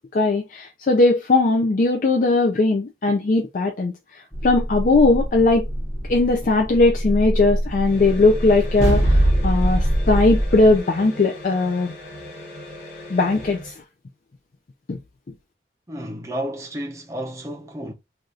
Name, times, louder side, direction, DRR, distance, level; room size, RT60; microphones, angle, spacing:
voice 1, 0.1-3.9 4.4-5.7 6.1-11.9 13.1-13.7 14.9-15.0, left 3 dB, 45° left, 0.4 m, -19 dB
sound 1, 4.3-10.8, right 1 dB, 20° left, 1.3 m, -23 dB
sound 2, 7.8-13.8, left 1 dB, 80° left, 1.8 m, -39 dB
voice 2, 15.9-17.9, right 1 dB, 15° right, 0.6 m, -31 dB
3.4 x 2.4 x 2.6 m
head